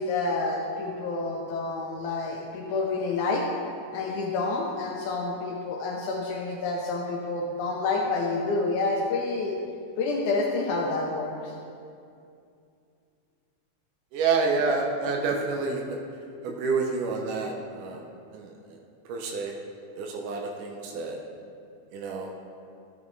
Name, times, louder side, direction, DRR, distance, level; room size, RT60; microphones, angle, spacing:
voice 1, 0.0-3.5 3.9-9.6 10.0-11.5, left 3 dB, 75° left, 0 dB, 2.1 m, -28 dB
voice 2, 14.1-16.0 16.4-18.0 18.3-18.8 19.1-19.5 20.0-21.2 21.9-22.3, right 4 dB, 85° right, 0 dB, 2.3 m, -28 dB
13.5 x 7.1 x 3.2 m, 2.5 s
omnidirectional pair, 3.6 m